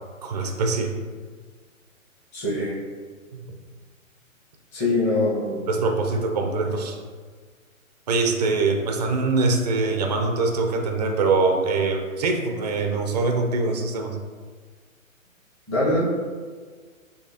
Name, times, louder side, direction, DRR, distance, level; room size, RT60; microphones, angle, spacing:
voice 1, 0.2-0.9 3.3-3.4 5.7-7.0 8.1-14.2, right 3 dB, 30° right, 4 dB, 0.4 m, -23 dB
voice 2, 2.3-2.8 4.7-5.7 15.7-16.0, left 2 dB, 15° left, -9 dB, 1.2 m, -23 dB
6.5 x 2.7 x 2.7 m, 1.5 s
figure-of-eight pair, 130°, 41 cm